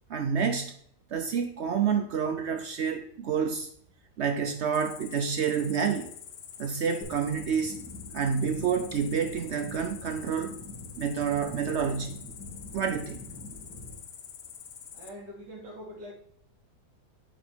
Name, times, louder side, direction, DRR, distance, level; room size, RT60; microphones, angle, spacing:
voice 1, 0.1-0.7 1.1-3.7 4.2-6.1 6.6-7.8 8.1-10.6 11.0-12.2 12.7-13.2, right 6 dB, 65° right, 7 dB, 0.6 m, -28 dB
Cricket, 4.7-15.1, left 8 dB, 65° left, 0.6 m, -46 dB
sound 1, 7.0-14.0, left 2 dB, 85° left, 3.2 m, -45 dB
voice 2, 14.9-16.1, equal, 85° right, -3 dB, 3.2 m, -43 dB
8.3 x 5.1 x 3.5 m, 0.65 s
omnidirectional pair, 1.8 m